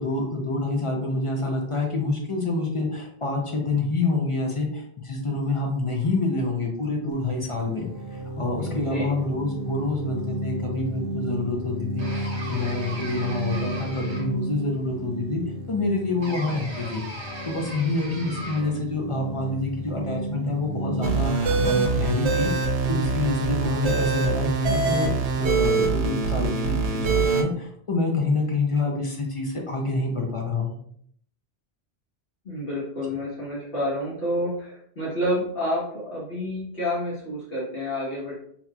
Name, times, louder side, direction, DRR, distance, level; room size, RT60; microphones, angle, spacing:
voice 1, 0.0-15.4 15.7-17.0 17.5-22.5 22.9-30.8, left 3 dB, 40° left, 0 dB, 0.5 m, -27 dB
sound 1, 7.1-24.7, right 1 dB, 60° right, 0.9 m, -34 dB
voice 2, 8.6-9.2 32.4-38.4, left 1 dB, 60° left, -8 dB, 1.4 m, -29 dB
sound 2, 12.0-14.5 16.2-18.8, right 1 dB, 30° right, 0.7 m, -38 dB
sound 3, 21.0-27.4, right 4 dB, 90° right, 1.0 m, -24 dB
4.0 x 2.8 x 2.3 m, 0.64 s
omnidirectional pair, 1.1 m